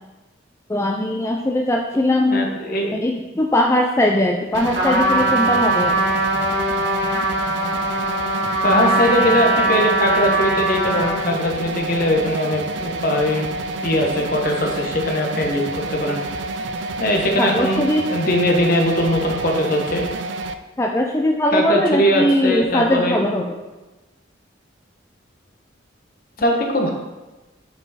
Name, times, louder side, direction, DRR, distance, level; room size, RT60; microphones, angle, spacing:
voice 1, 0.7-2.5 2.9-6.0 17.4-18.0 20.8-23.5, left 1 dB, 15° left, 0 dB, 0.4 m, -20 dB
voice 2, 2.3-3.0 8.6-13.5 13.8-16.2 17.0-20.1 21.5-23.2 26.4-26.9, left 1 dB, 50° left, 1 dB, 1.1 m, -20 dB
sound 1, 4.5-20.5, right 2 dB, 75° right, 0.4 m, -29 dB
Trumpet, 4.7-11.3, right 2 dB, 55° right, 2.3 m, -21 dB
7.0 x 4.6 x 4.1 m, 1.1 s
head